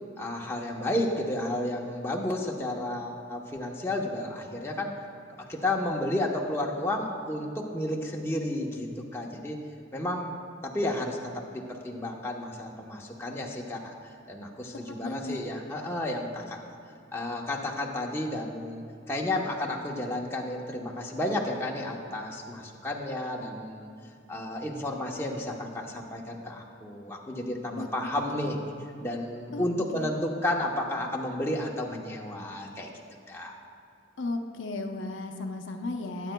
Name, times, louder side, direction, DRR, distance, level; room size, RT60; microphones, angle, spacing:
voice 1, 0.2-4.9 5.5-9.6 9.9-10.3 10.6-13.9 14.3-16.6 17.1-23.9 24.3-28.6 29.0-32.9 33.3-33.5, left 1 dB, 15° left, -1 dB, 0.9 m, -32 dB
voice 2, 14.9-15.4 27.8-27.9 28.4-28.5 29.5-29.7 29.9-30.1 34.2-36.3, left 2 dB, 75° left, 4 dB, 0.7 m, -35 dB
20.5 x 9.1 x 2.3 m, 2.5 s
head